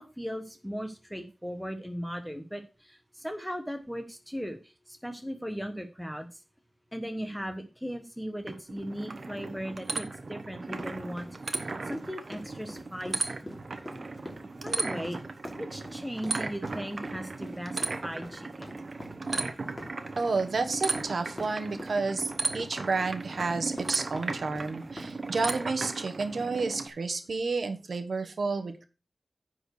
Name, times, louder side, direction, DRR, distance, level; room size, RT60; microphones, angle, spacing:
voice 1, 0.0-6.4 6.9-11.3 11.8-13.4 14.6-15.2 15.5-18.8, equal, ahead, 5 dB, 1.1 m, -38 dB
sound 1, 8.5-26.9, right 3 dB, 65° right, 1.1 m, -36 dB
sound 2, 10.7-25.6, left 1 dB, 30° left, 3.0 m, -45 dB
voice 2, 20.2-28.8, right 4 dB, 85° right, 7 dB, 1.2 m, -31 dB
9.8 x 4.6 x 6.4 m, 0.33 s
wide cardioid pair, 65°, 0 cm